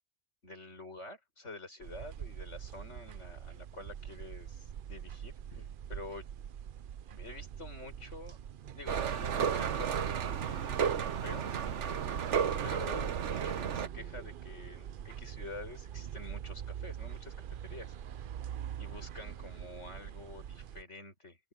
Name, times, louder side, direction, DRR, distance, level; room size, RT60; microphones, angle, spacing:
voice 1, 0.4-6.3 7.1-8.4 8.7-10.8 11.2-11.5 12.6-17.9 18.8-21.4, left 2 dB, 75° left, 7.1 m, -48 dB
sound 1, 1.8-20.8, right 9 dB, 55° right, 0.7 m, -44 dB
sound 2, 8.9-13.9, right 8 dB, 80° right, 1.2 m, -32 dB
open air
omnidirectional pair, 1.2 m